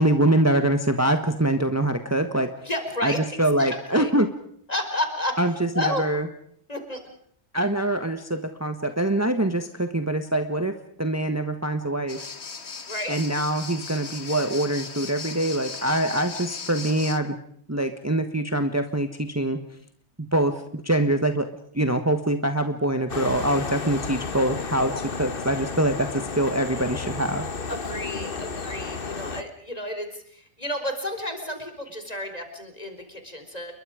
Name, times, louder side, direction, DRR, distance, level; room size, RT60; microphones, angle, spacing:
voice 1, 0.0-2.5 3.0-3.1 3.4-4.3 5.4-6.2 7.5-12.2 13.1-17.3 17.7-19.6 20.2-21.5 21.7-27.4, right 1 dB, 15° right, 7 dB, 1.4 m, -24 dB
voice 2, 2.6-4.1 4.7-5.4 5.7-6.0 6.7-7.0 12.9-13.2 27.7-33.7, left 1 dB, 35° left, 6 dB, 4.6 m, -31 dB
sound 1, 12.1-17.2, left 5 dB, 65° left, 1.8 m, -37 dB
sound 2, 23.1-29.4, left 4 dB, 50° left, 1.5 m, -32 dB
29.5 x 22.5 x 5.1 m, 0.65 s
omnidirectional pair, 1.2 m